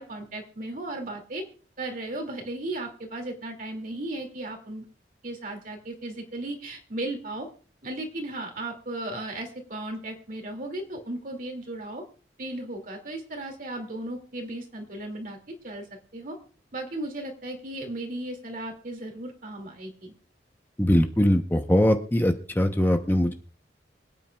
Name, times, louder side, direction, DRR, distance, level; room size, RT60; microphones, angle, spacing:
voice 1, 0.0-1.4 1.8-4.8 5.2-7.5 7.8-12.0 12.4-15.9 16.1-16.4 16.7-20.1, right 1 dB, 50° right, 3 dB, 2.4 m, -35 dB
voice 2, 20.8-23.3, equal, 10° left, 5 dB, 0.8 m, -21 dB
25.5 x 9.1 x 2.3 m, 0.39 s
head